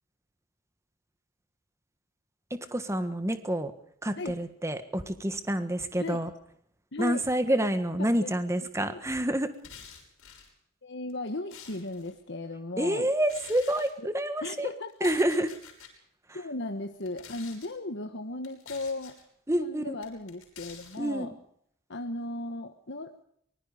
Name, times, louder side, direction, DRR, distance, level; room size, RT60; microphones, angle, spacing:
voice 1, 2.7-3.7 4.0-6.3 7.0-9.5 12.8-14.7 15.0-15.5 19.5-20.0 21.0-21.3, right 1 dB, 15° right, 10 dB, 1.5 m, -28 dB
voice 2, 6.9-7.2 8.0-8.4 8.9-9.0 10.8-13.1 14.0-14.1 14.4-15.1 16.3-19.2 19.6-21.3 21.9-23.1, left 2 dB, 55° left, 6 dB, 1.4 m, -36 dB
sound 1, 9.5-10.5 11.1-12.1 13.2-13.9 14.9-15.9 16.9-17.7 18.4-19.2 20.0-21.0, left 7 dB, 80° left, 6.6 m, -49 dB
24.5 x 21.5 x 5.1 m, 0.69 s
head